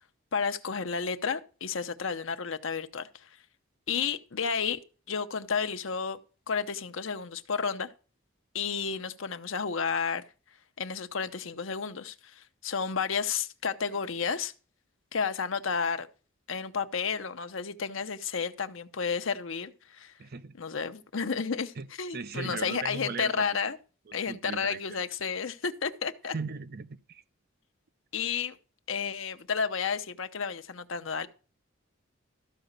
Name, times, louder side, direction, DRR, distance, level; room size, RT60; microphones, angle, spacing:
voice 1, 0.3-3.1 3.9-4.8 5.1-6.2 6.5-7.9 8.5-10.2 10.8-14.5 15.1-16.1 16.5-20.1 20.6-23.8 24.1-26.3 28.1-28.6 28.9-31.3, left 6 dB, 70° left, 0.8 m, -31 dB
voice 2, 20.2-20.5 21.8-21.9 22.1-23.5 24.1-24.8 26.3-27.2, right 4 dB, 50° right, 0.6 m, -38 dB
13.5 x 4.9 x 6.6 m
head